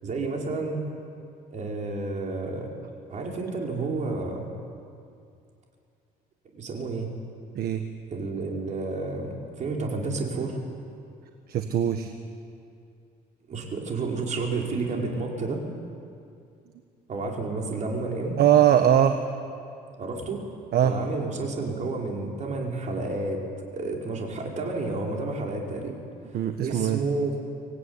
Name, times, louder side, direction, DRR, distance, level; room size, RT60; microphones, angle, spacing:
voice 1, 0.0-0.9 1.5-2.7 3.1-4.5 6.6-7.1 8.1-10.6 13.5-15.6 17.1-18.4 20.0-20.4 20.8-23.4 23.7-25.9 26.3-27.4, right 3 dB, 45° right, 0 dB, 5.1 m, -30 dB
voice 2, 11.5-12.1 18.4-19.2 20.7-20.9 26.3-27.0, right 10 dB, 65° right, 7 dB, 1.4 m, -21 dB
25.0 x 17.5 x 9.8 m, 2.5 s
cardioid pair, 110°, 17 cm